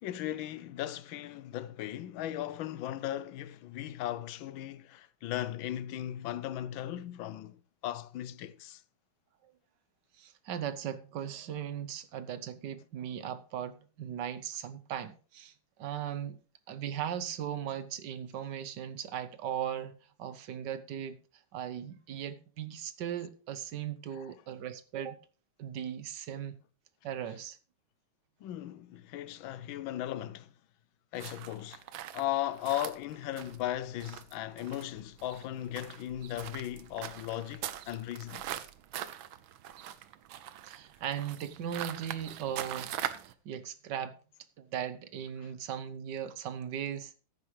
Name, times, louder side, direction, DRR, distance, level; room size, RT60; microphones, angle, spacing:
voice 1, 0.0-8.8 24.2-24.3 28.4-30.5 31.1-31.8 32.1-38.4, left 13 dB, 80° left, 1.5 m, -37 dB
voice 2, 10.2-15.5 15.8-16.4 16.7-21.2 21.5-25.2 25.6-26.6 27.0-27.6 40.6-42.9 43.2-44.2 44.6-47.2, right 9 dB, 65° right, 1.5 m, -38 dB
sound 1, 31.2-43.3, right 11 dB, 80° right, 1.6 m, -42 dB
14.5 x 10.0 x 3.2 m
omnidirectional pair, 2.2 m